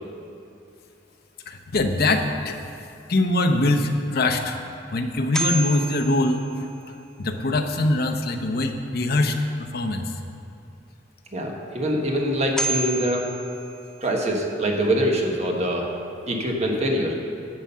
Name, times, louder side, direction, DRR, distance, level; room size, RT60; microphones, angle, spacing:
voice 1, 1.5-2.6 3.1-4.5 4.9-6.7 7.2-10.1, left 2 dB, 60° left, 5 dB, 0.8 m, -23 dB
sound 1, 5.1-7.2 12.2-12.3 12.6-14.5, right 1 dB, 5° left, 0.6 m, -31 dB
voice 2, 11.3-13.3 14.0-15.9 16.3-17.2, equal, 40° right, 0 dB, 1.3 m, -24 dB
11.0 x 7.4 x 5.6 m, 2.7 s
head